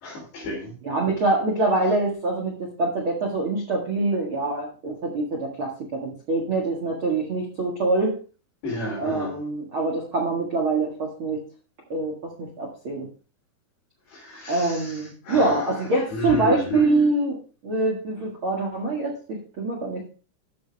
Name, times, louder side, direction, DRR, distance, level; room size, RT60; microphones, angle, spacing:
voice 1, 0.0-0.7 8.6-9.4 14.1-17.1, equal, 60° left, -4 dB, 5.5 m, -32 dB
voice 2, 0.8-8.2 9.0-11.4 11.9-13.1 14.5-17.4 17.6-20.1, right 2 dB, 70° right, -2 dB, 1.2 m, -25 dB
14.0 x 6.1 x 3.4 m, 0.36 s
omnidirectional pair, 5.6 m